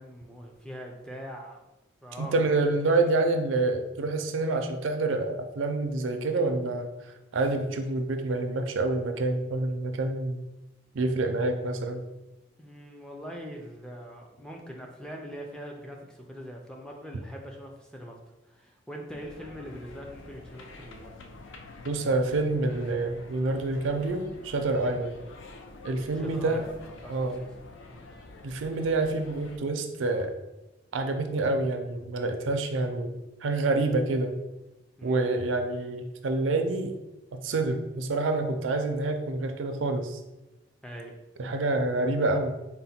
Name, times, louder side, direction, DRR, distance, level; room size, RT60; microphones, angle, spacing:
voice 1, 0.0-1.6 2.0-2.8 12.6-21.2 25.0-25.2 26.1-27.5 27.9-28.1 35.0-35.2 40.8-41.1, equal, 5° left, 0 dB, 0.4 m, -43 dB
voice 2, 2.2-6.9 7.3-10.4 10.9-12.0 21.8-25.2 25.8-26.7 27.1-27.4 28.4-30.3 30.9-33.1 33.4-34.3 35.0-36.9 37.3-40.2 41.4-42.6, right 2 dB, 80° right, 6 dB, 0.4 m, -27 dB
sound 1, 19.1-29.6, left 2 dB, 75° left, 0.4 m, -48 dB
3.9 x 2.1 x 4.1 m, 1.0 s
head